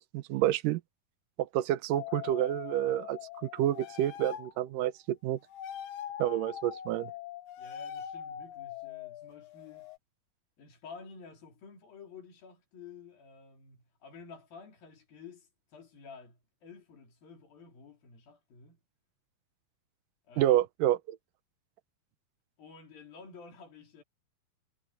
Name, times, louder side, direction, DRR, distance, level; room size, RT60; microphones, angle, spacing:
voice 1, 0.1-0.8 1.4-5.4 6.2-7.1 20.4-21.2, right 13 dB, 70° right, 2.3 m, -29 dB
sound 1, 1.9-4.6 5.5-10.0, left 10 dB, 85° left, 3.5 m, -42 dB
voice 2, 7.6-9.9 10.6-18.8 20.3-20.9 22.6-24.0, left 5 dB, 70° left, 5.6 m, -51 dB
omnidirectional pair, 4.4 m